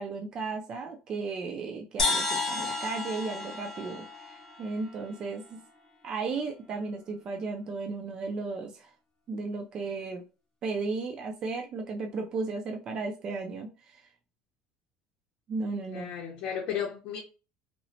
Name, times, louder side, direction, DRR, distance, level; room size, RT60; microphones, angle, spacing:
voice 1, 0.0-5.6 6.0-8.9 9.3-10.2 10.6-14.0 15.5-16.1, right 4 dB, 35° right, 0.4 m, -35 dB
sound 1, 2.0-5.5, left 3 dB, 25° left, 0.8 m, -32 dB
voice 2, 15.9-17.2, left 8 dB, 60° left, 0.6 m, -34 dB
2.9 x 2.0 x 2.7 m
cardioid pair, 160°, 2 cm